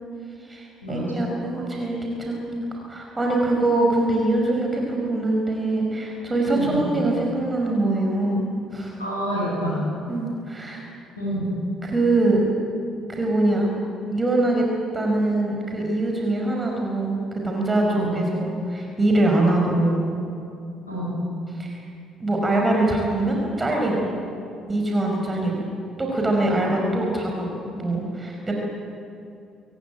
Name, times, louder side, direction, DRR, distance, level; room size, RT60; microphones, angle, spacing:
voice 1, 0.4-2.6 2.9-9.0 10.1-10.8 11.8-12.4 13.1-13.7 14.1-14.7 14.9-20.0 21.5-21.8 22.2-24.1 24.7-25.7 26.0-27.5 27.8-28.5, right 2 dB, 20° right, 0 dB, 5.5 m, -23 dB
voice 2, 6.5-6.8 9.0-9.8 11.2-11.5 17.9-18.1 20.9-21.2, equal, 85° left, -7 dB, 6.2 m, -28 dB
25.0 x 17.0 x 9.4 m, 2.6 s
figure-of-eight pair, 50°, 0 cm